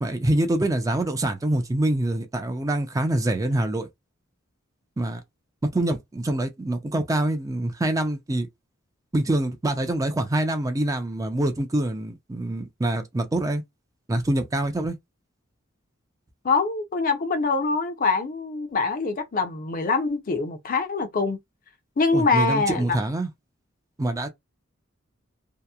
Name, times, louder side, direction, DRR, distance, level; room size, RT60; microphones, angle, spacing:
voice 1, 0.0-3.9 5.0-5.2 5.7-8.5 9.1-13.6 14.1-15.0 22.1-23.3 24.0-24.3, right 1 dB, 15° right, 0.4 m, -25 dB
voice 2, 16.4-21.4 22.0-23.0, left 4 dB, 45° left, 0.5 m, -24 dB
2.8 x 2.0 x 2.3 m
head